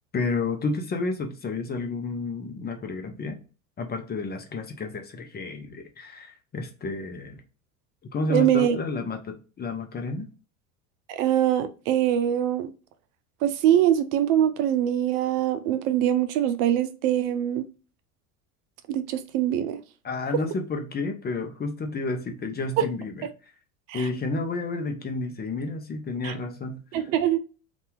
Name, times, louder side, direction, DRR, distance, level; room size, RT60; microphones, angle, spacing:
voice 1, 0.1-3.4 3.8-7.4 8.1-10.3 20.0-23.3 23.9-26.8, left 3 dB, 25° left, 0.6 m, -31 dB
voice 2, 8.3-8.8 11.1-12.7 13.4-17.7 18.9-19.8 22.8-22.9 23.9-24.1 26.2-26.3 26.9-27.4, right 11 dB, 65° right, 0.6 m, -23 dB
2.7 x 2.5 x 3.4 m
hypercardioid pair, 90°, 41 cm